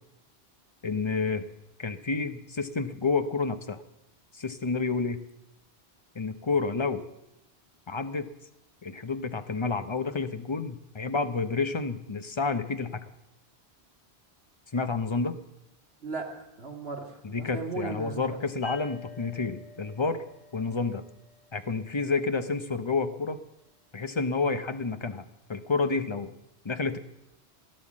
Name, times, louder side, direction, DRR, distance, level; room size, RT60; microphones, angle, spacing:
voice 1, 0.8-1.4 1.8-3.8 4.3-5.2 6.1-7.0 7.9-8.3 8.8-13.0 14.7-15.3 17.2-20.2 20.5-21.0 21.5-23.4 23.9-25.2 25.5-26.3 26.6-27.0, left 4 dB, 30° left, 10 dB, 0.8 m, -29 dB
voice 2, 16.0-18.4, right 4 dB, 65° right, 1 dB, 2.5 m, -37 dB
sound 1, 18.6-22.1, left 4 dB, 70° left, 8.1 m, -48 dB
16.5 x 11.0 x 7.4 m, 0.88 s
omnidirectional pair, 1.1 m